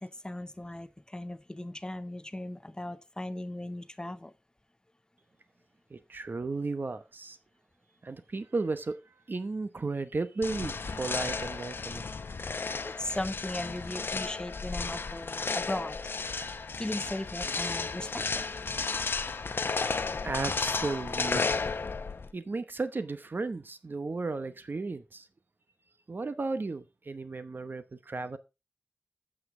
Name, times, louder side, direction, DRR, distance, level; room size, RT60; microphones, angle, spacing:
voice 1, 0.0-4.3 12.8-16.0 16.8-18.5, left 1 dB, 20° left, 0.8 m, -37 dB
voice 2, 5.9-7.4 8.0-9.0 9.3-12.1 20.2-21.7 22.3-25.2 26.1-28.4, right 3 dB, 60° right, 0.9 m, -34 dB
sound 1, 10.4-22.3, left 4 dB, 80° left, 0.7 m, -33 dB
8.5 x 7.6 x 3.7 m
wide cardioid pair, 55°, 4 cm